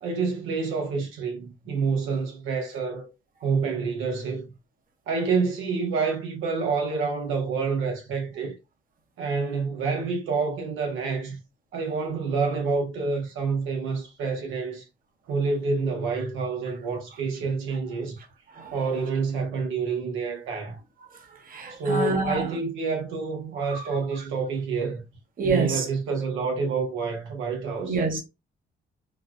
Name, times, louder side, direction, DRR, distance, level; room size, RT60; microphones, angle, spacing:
voice 1, 0.0-3.1 3.4-4.5 5.1-8.5 9.2-11.4 11.7-14.8 15.3-18.2 18.7-20.8 21.7-25.0 25.4-28.0, right 4 dB, 90° right, 1.0 m, -28 dB
voice 2, 21.1-22.5 23.7-23.8 25.4-25.9 27.8-28.2, right 4 dB, 45° right, 1.0 m, -27 dB
3.9 x 2.2 x 2.4 m
cardioid pair, 90°, 20 cm